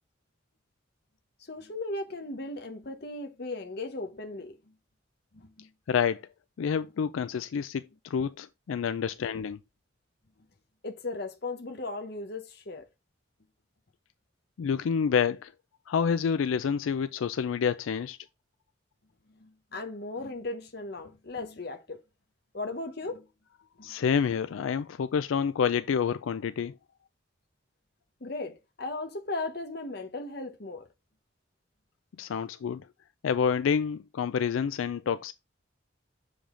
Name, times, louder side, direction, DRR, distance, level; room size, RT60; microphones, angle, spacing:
voice 1, 1.4-4.7 5.3-5.7 10.8-12.9 19.3-22.0 22.5-23.3 23.8-23.9 28.2-30.9, left 2 dB, 55° left, 1.1 m, -37 dB
voice 2, 5.9-6.2 6.6-9.6 14.6-15.5 15.9-18.2 23.8-26.8 32.2-32.8 33.2-35.3, left 7 dB, 90° left, 0.4 m, -28 dB
7.1 x 5.1 x 3.8 m
head